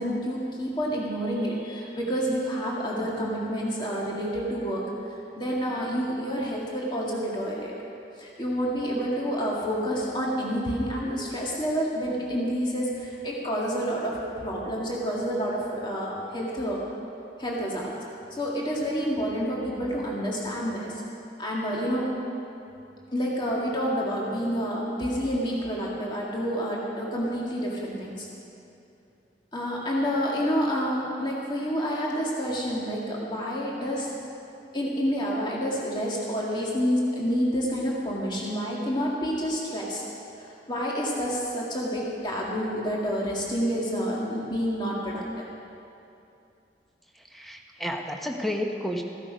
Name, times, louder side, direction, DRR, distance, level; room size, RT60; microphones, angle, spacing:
voice 1, 0.0-4.8 5.4-7.7 8.2-16.8 17.4-17.9 18.3-21.0 21.4-22.1 23.1-28.3 29.5-34.1 34.7-40.0 40.4-45.5, equal, 25° left, -4 dB, 1.8 m, -28 dB
voice 2, 47.2-49.0, left 1 dB, ahead, 2 dB, 1.0 m, -31 dB
15.0 x 12.0 x 5.1 m, 2.7 s
head